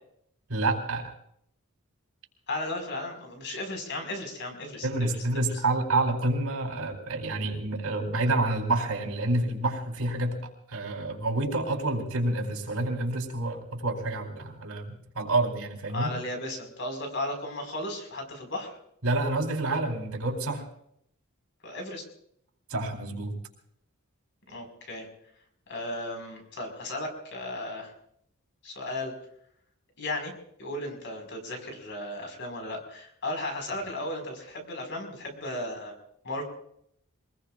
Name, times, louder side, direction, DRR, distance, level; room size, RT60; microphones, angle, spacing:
voice 1, 0.5-1.1 4.8-16.1 19.0-20.6 22.7-23.4, right 2 dB, 80° right, 1 dB, 4.1 m, -28 dB
voice 2, 2.5-5.1 15.9-18.8 21.6-22.0 24.5-25.1 25.7-27.9 28.6-29.1 30.0-30.3 30.6-35.9 36.2-36.4, left 1 dB, 55° left, 4 dB, 5.2 m, -35 dB
26.5 x 20.5 x 2.5 m, 0.71 s
head